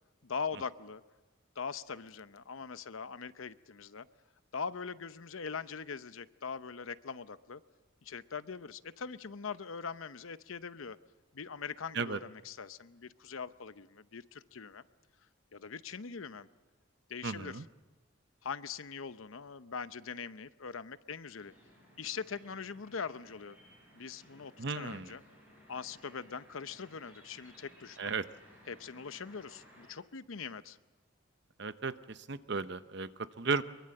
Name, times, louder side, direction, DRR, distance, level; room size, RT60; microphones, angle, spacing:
voice 1, 0.2-1.0 1.6-4.1 4.5-7.6 8.0-11.0 11.3-14.8 15.5-16.5 17.1-17.6 18.4-21.5 22.0-23.6 23.9-25.2 25.7-28.0 28.7-30.8, left 5 dB, 85° left, 14 dB, 0.8 m, -42 dB
voice 2, 17.2-17.6 24.6-25.2 28.0-28.3 31.6-33.6, right 4 dB, 55° right, 12 dB, 0.8 m, -35 dB
sound 1, 21.4-29.9, equal, 10° right, 7.7 m, -60 dB
23.5 x 23.0 x 7.7 m, 1.1 s
head